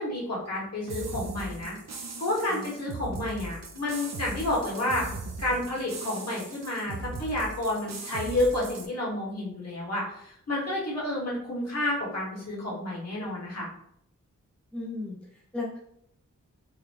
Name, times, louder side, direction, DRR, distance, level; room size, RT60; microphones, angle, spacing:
voice 1, 0.0-1.7 2.2-5.0 5.4-13.7, left 1 dB, 55° left, -5 dB, 1.4 m, -30 dB
sound 1, 0.9-8.9, right 3 dB, 60° right, 0.6 m, -39 dB
voice 2, 14.7-15.8, left 2 dB, 5° left, -4 dB, 0.6 m, -36 dB
3.8 x 2.2 x 3.2 m, 0.70 s
wide cardioid pair, 100°, 31 cm